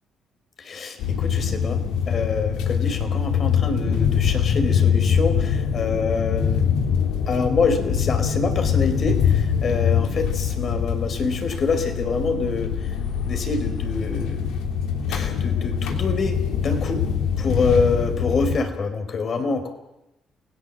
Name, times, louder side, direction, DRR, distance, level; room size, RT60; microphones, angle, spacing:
voice 1, 0.6-6.7 7.3-12.9 13.3-14.5 15.1-17.0 17.4-19.7, left 4 dB, 50° left, 8 dB, 4.6 m, -26 dB
sound 1, 1.0-18.6, left 7 dB, 85° left, 3.0 m, -23 dB
29.0 x 18.0 x 7.5 m, 0.92 s
cardioid pair, 80°, 0 cm